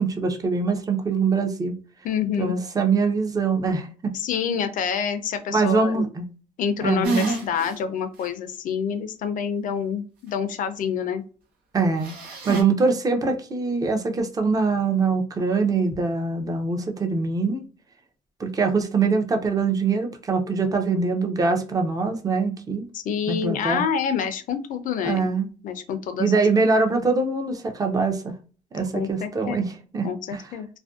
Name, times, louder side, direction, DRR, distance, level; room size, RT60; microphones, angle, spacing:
voice 1, 0.0-1.8 2.4-4.1 5.5-6.3 6.8-7.2 11.7-12.1 12.5-17.6 18.4-22.9 23.3-23.8 25.0-25.5 26.2-28.4 28.7-30.5, right 4 dB, 25° right, 0.5 m, -23 dB
voice 2, 2.0-2.5 4.1-6.1 6.6-11.2 22.9-25.3 25.6-26.4 28.9-29.7 30.0-30.7, left 7 dB, 65° left, 0.5 m, -27 dB
sound 1, 7.0-7.7 8.2-8.3 12.0-12.6, right 3 dB, 90° right, 0.8 m, -27 dB
2.5 x 2.1 x 2.3 m
cardioid pair, 100°, 15 cm